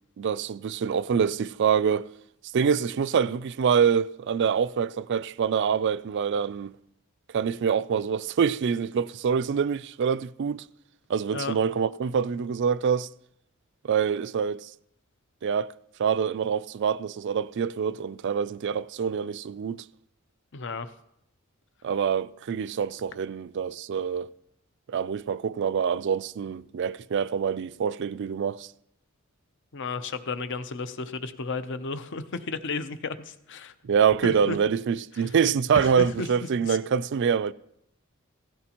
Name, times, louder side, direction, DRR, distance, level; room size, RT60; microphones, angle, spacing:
voice 1, 0.2-2.1 2.5-6.7 7.3-10.6 11.1-13.1 13.8-14.7 15.4-15.7 16.0-19.8 21.8-24.3 24.9-28.7 33.8-37.5, right 7 dB, 55° right, 0.4 m, -25 dB
voice 2, 20.5-20.9 29.7-33.7 34.2-34.6 35.1-35.3 35.7-36.3 36.6-36.8, left 4 dB, 60° left, 0.7 m, -33 dB
16.5 x 15.5 x 3.0 m
head